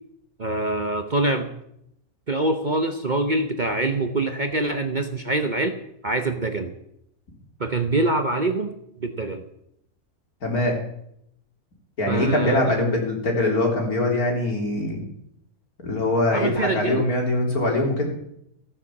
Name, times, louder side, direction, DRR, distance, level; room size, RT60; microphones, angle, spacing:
voice 1, 0.4-1.5 2.3-5.8 6.0-6.7 7.6-8.7 9.0-9.4 12.1-12.8 16.3-17.1, right 2 dB, 35° right, 7 dB, 0.9 m, -24 dB
voice 2, 10.4-10.7 12.0-15.0 15.8-18.1, left 2 dB, 70° left, 1 dB, 3.8 m, -22 dB
15.0 x 9.6 x 7.2 m, 0.75 s
omnidirectional pair, 1.6 m